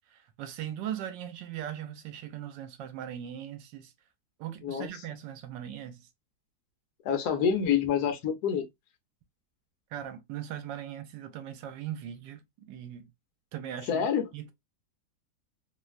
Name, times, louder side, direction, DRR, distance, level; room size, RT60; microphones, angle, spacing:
voice 1, 0.1-3.9 4.4-6.1 9.9-13.1 13.5-14.1 14.3-14.5, right 10 dB, 80° right, 1.3 m, -39 dB
voice 2, 7.0-8.6 13.9-14.3, left 7 dB, 65° left, 1.1 m, -27 dB
3.1 x 2.1 x 2.3 m
omnidirectional pair, 2.0 m